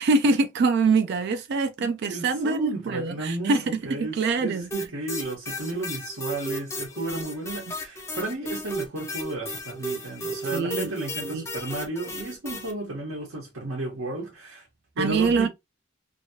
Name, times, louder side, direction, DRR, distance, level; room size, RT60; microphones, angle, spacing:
voice 1, 0.0-4.7 10.5-10.9 11.2-11.5 15.0-15.5, right 4 dB, 55° right, 0.3 m, -24 dB
voice 2, 1.8-14.7 15.0-15.5, right 2 dB, 80° right, 1.1 m, -33 dB
sound 1, 4.7-12.7, right 1 dB, 15° left, 0.6 m, -34 dB
2.9 x 2.7 x 2.7 m
head